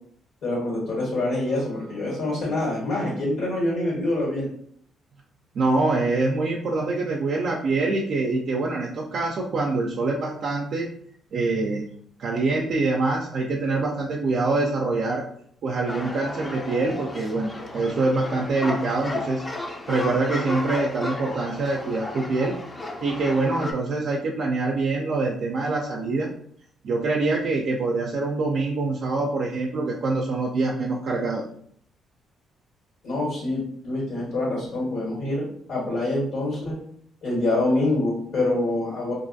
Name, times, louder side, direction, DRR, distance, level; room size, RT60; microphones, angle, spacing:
voice 1, 0.4-4.5 33.0-35.4 35.7-36.7 37.2-39.1, left 2 dB, 80° left, -5 dB, 1.4 m, -25 dB
voice 2, 5.5-10.9 11.3-11.8 12.2-15.2 15.6-19.4 19.9-22.5 23.0-26.3 26.8-31.4, right 3 dB, 60° right, -1 dB, 0.4 m, -25 dB
sound 1, 15.9-23.7, left 2 dB, 25° left, 0.5 m, -34 dB
2.5 x 2.4 x 2.6 m, 0.63 s
cardioid pair, 90°, 0 cm